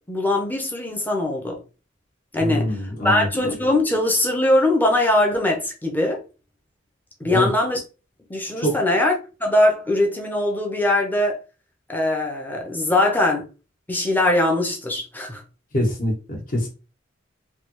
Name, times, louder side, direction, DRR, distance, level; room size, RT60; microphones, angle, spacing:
voice 1, 0.1-1.6 2.3-2.8 3.0-6.2 7.2-7.8 8.3-11.4 11.9-13.5 13.9-15.4, left 1 dB, 10° left, 0.7 m, -21 dB
voice 2, 2.4-3.3 7.3-7.5 8.6-8.8 15.7-16.7, equal, 45° left, 1.1 m, -24 dB
3.3 x 2.3 x 3.0 m
head